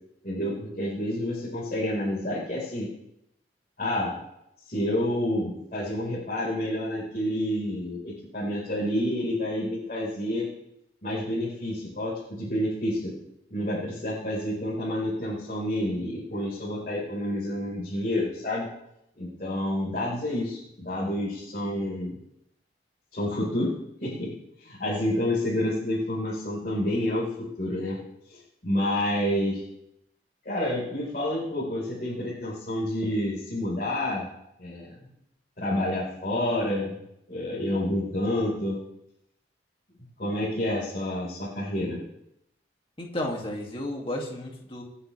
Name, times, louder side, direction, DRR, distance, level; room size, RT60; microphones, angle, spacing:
voice 1, 0.2-2.9 3.8-4.1 4.7-10.5 11.0-13.1 13.5-18.7 19.2-22.2 23.1-23.7 24.0-24.3 24.6-28.0 28.3-29.6 30.4-34.3 34.6-35.0 35.6-36.9 37.3-38.8 40.2-42.0, left 1 dB, 50° left, -8 dB, 4.8 m, -29 dB
voice 2, 43.0-44.8, left 1 dB, 30° left, 0 dB, 2.5 m, -32 dB
27.0 x 9.7 x 3.5 m, 0.80 s
head